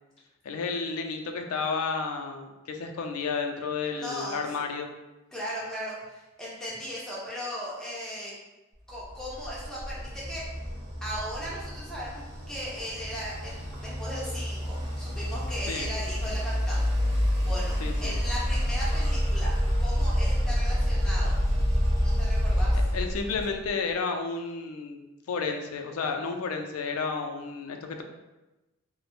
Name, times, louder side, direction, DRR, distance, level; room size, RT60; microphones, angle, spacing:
voice 1, 0.4-4.9 15.7-15.9 17.8-18.2 22.7-25.0 25.3-28.0, left 4 dB, 85° left, 4 dB, 0.4 m, -32 dB
voice 2, 3.9-4.4 5.3-8.3 8.9-10.4 11.0-17.7 18.0-21.4 22.0-22.8, equal, 5° left, -7 dB, 0.5 m, -37 dB
sound 1, 9.2-23.7, equal, 45° right, 1.2 m, -28 dB
3.1 x 2.0 x 2.9 m, 1.1 s
head